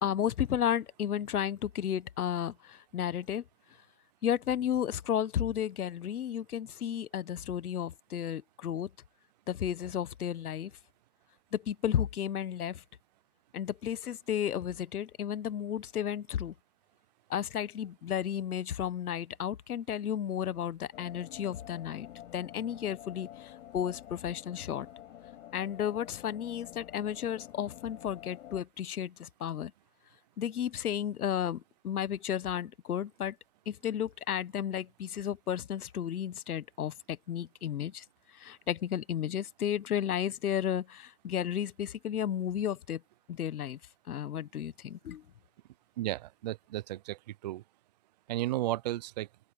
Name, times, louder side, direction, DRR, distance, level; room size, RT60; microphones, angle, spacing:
voice 1, 0.0-3.4 4.2-8.9 9.5-10.7 11.5-12.8 13.5-16.5 17.3-22.1 22.3-24.9 25.5-29.7 30.4-33.4 33.7-38.0 38.3-43.0 43.3-43.8 44.1-45.2, left 9 dB, 75° left, 1.5 m, -33 dB
sound 1, 20.9-28.6, left 12 dB, 55° left, 7.2 m, -49 dB
voice 2, 46.0-47.6 48.3-49.3, right 15 dB, 30° right, 0.5 m, -34 dB
open air
hypercardioid pair, 140°, 45 cm